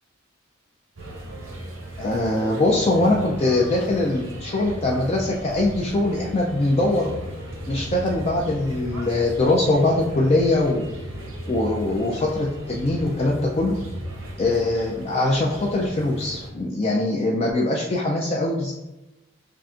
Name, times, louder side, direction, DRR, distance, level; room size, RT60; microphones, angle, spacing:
sound 1, 0.9-16.5, right 1 dB, 90° right, 0.7 m, -36 dB
voice 1, 2.0-7.1 7.7-10.9 11.5-13.8 14.4-18.7, left 2 dB, 30° left, -2 dB, 0.3 m, -22 dB
5.5 x 2.4 x 2.4 m, 1.0 s
head